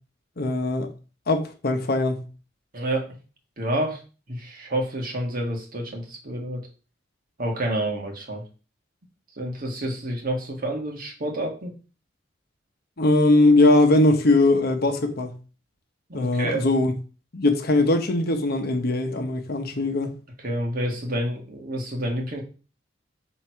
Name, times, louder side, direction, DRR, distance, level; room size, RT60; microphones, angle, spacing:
voice 1, 0.4-0.9 1.3-2.2 13.0-15.4 16.1-16.9 17.3-20.2, left 2 dB, 55° left, 0.9 m, -20 dB
voice 2, 2.7-3.2 3.6-4.0 4.3-6.6 7.4-8.4 9.4-11.7 16.1-16.6 20.4-22.4, right 1 dB, 50° right, 1.7 m, -29 dB
6.1 x 3.6 x 4.6 m
head